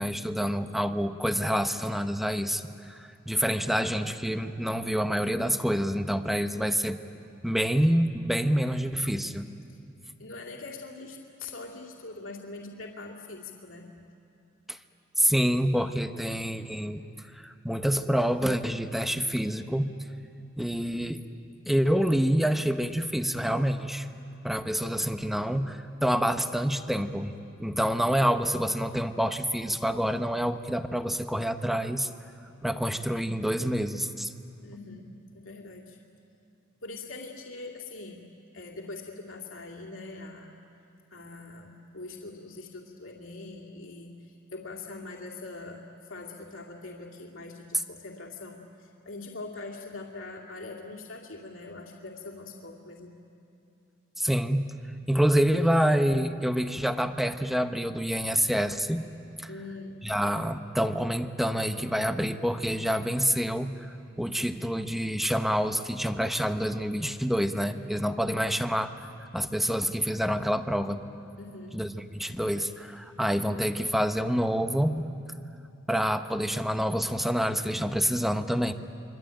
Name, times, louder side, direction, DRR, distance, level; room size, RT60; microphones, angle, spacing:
voice 1, 0.0-7.0 7.4-9.5 14.7-14.8 15.2-17.0 17.3-19.9 20.6-21.2 21.7-24.1 24.4-27.3 27.6-32.1 32.6-34.3 54.2-54.6 55.1-59.0 59.4-59.5 60.0-71.0 71.7-75.1 75.9-78.7, equal, ahead, 8 dB, 0.9 m, -27 dB
voice 2, 10.2-13.9 34.6-36.0 36.8-38.3 38.5-40.5 41.1-45.8 46.1-53.2 59.5-60.1 71.4-71.8, left 3 dB, 70° left, -1 dB, 2.6 m, -42 dB
25.5 x 24.5 x 9.1 m, 2.6 s
head